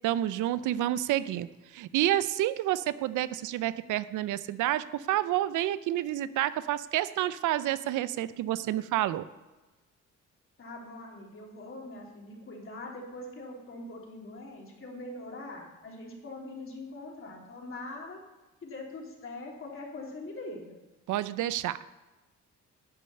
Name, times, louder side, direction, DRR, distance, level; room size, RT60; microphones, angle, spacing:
voice 1, 0.0-1.5 1.7-9.2 21.1-21.8, right 13 dB, 80° right, 16 dB, 0.5 m, -29 dB
voice 2, 10.6-18.2 18.6-20.8, left 2 dB, 45° left, -1 dB, 3.2 m, -42 dB
11.0 x 5.3 x 8.5 m, 1.1 s
cardioid pair, 90°, 30 cm